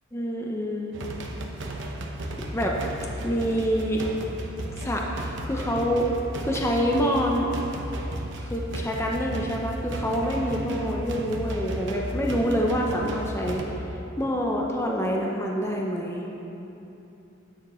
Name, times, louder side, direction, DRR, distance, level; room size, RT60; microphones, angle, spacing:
voice 1, 0.1-0.9 2.4-2.8 3.2-4.0 4.8-6.1 6.4-7.5 8.4-13.6 14.2-16.3, equal, 15° left, -1 dB, 0.7 m, -26 dB
sound 1, 0.9-13.6, right 1 dB, 60° right, 1.0 m, -34 dB
13.0 x 9.7 x 3.1 m, 3.0 s
head